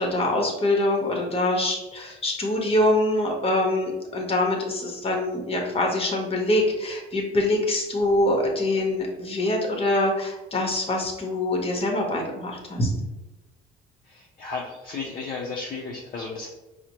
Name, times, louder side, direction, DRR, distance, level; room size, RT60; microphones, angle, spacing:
voice 1, 0.0-12.9, left 1 dB, 30° left, 1 dB, 1.0 m, -24 dB
voice 2, 14.1-16.5, left 4 dB, 45° left, -3 dB, 0.6 m, -34 dB
4.9 x 2.1 x 2.9 m, 1.1 s
cardioid pair, 100°, 20 cm